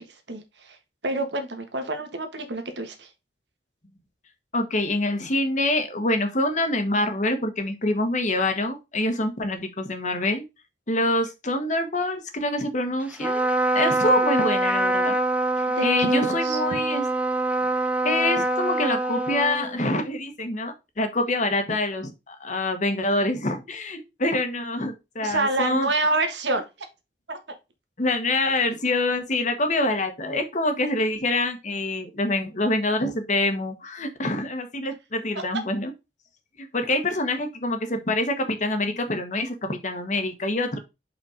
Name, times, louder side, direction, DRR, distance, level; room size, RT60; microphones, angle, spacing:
voice 1, 0.3-0.8 1.0-3.1 15.7-16.8 25.2-26.6 27.3-27.4 35.3-35.4, right 2 dB, 90° right, 1.5 m, -27 dB
voice 2, 4.5-10.4 10.9-13.5 13.7-15.1 15.6-17.0 18.0-25.9 28.0-35.9 36.6-40.8, left 2 dB, 45° left, 1.3 m, -26 dB
Trumpet, 13.1-20.0, right 2 dB, 10° right, 0.7 m, -24 dB
5.2 x 4.4 x 5.0 m
head